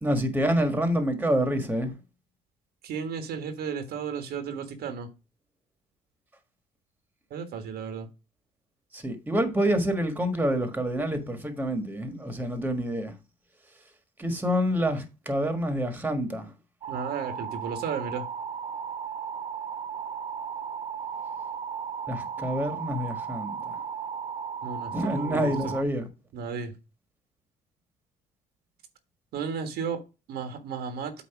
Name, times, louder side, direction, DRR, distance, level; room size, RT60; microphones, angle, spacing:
voice 1, 0.0-1.9 8.9-13.1 14.2-16.5 22.1-23.6 24.9-26.1, equal, 10° right, 1.6 m, -27 dB
voice 2, 2.8-5.1 7.3-8.1 16.9-18.3 24.6-25.7 26.3-26.7 29.3-30.0 30.3-31.1, right 6 dB, 70° right, 1.6 m, -34 dB
sound 1, 16.8-25.8, right 7 dB, 35° right, 0.5 m, -35 dB
8.6 x 3.1 x 5.9 m
cardioid pair, 110°, 17 cm